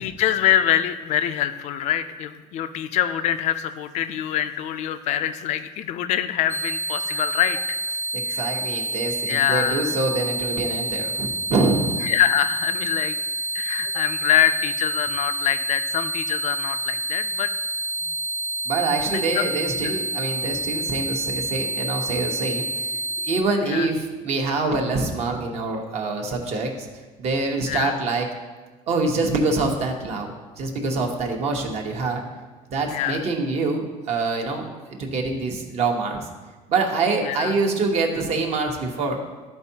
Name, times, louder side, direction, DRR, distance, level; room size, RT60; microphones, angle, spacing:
voice 1, 0.0-7.8 8.3-8.4 9.2-9.9 12.0-13.2 13.5-17.5 19.1-19.5 19.8-19.9 23.6-23.9 27.7-27.9 32.9-33.2 37.2-37.5, left 10 dB, 45° left, 11 dB, 0.4 m, -24 dB
sound 1, 6.5-23.4, right 2 dB, 15° right, 0.5 m, -28 dB
voice 2, 8.1-11.9 18.6-22.9 23.2-26.7 27.2-28.3 28.9-30.3 30.6-32.2 32.7-34.6 35.0-36.2 36.7-39.2, right 3 dB, 40° right, 2 dB, 1.0 m, -25 dB
13.0 x 4.5 x 2.8 m, 1.3 s
cardioid pair, 165°, 16 cm